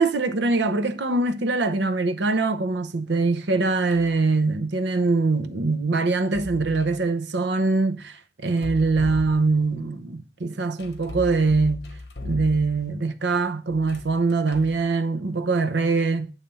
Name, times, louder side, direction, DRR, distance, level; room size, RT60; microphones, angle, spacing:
voice 1, 0.0-11.9 12.2-16.3, right 3 dB, 75° right, 0.7 m, -23 dB
sound 1, 3.9-4.2 6.1-7.0 8.5-9.8 10.8-13.0 13.7-14.8, left 2 dB, 65° left, 1.0 m, -37 dB
8.8 x 3.3 x 5.4 m
head